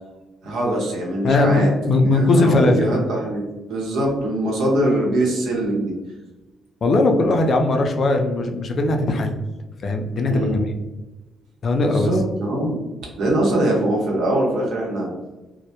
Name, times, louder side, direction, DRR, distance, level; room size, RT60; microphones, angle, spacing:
voice 1, 0.4-1.7 2.0-3.4 3.7-5.9 10.3-10.6 11.8-15.1, right 1 dB, 80° right, -2 dB, 0.8 m, -22 dB
voice 2, 1.2-2.9 6.8-9.4 9.8-10.7 11.6-12.1, left 2 dB, 50° left, 3 dB, 0.4 m, -19 dB
2.1 x 2.1 x 2.8 m, 1.1 s
cardioid pair, 90°, 0 cm